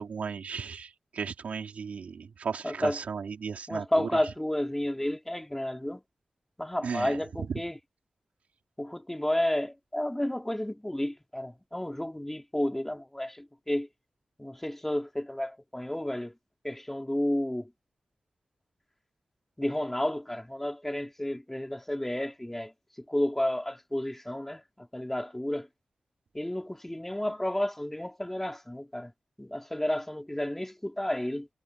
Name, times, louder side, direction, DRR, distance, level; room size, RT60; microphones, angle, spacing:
voice 1, 0.0-4.1 6.8-7.6, right 6 dB, 85° right, 4.1 m, -35 dB
voice 2, 2.6-3.0 3.7-6.0 6.6-7.8 8.8-13.9 14.4-16.3 16.6-17.7 19.6-22.7 23.1-25.7 26.3-29.1 29.4-31.5, left 1 dB, 10° left, 2.8 m, -31 dB
cardioid pair, 55°, 2 cm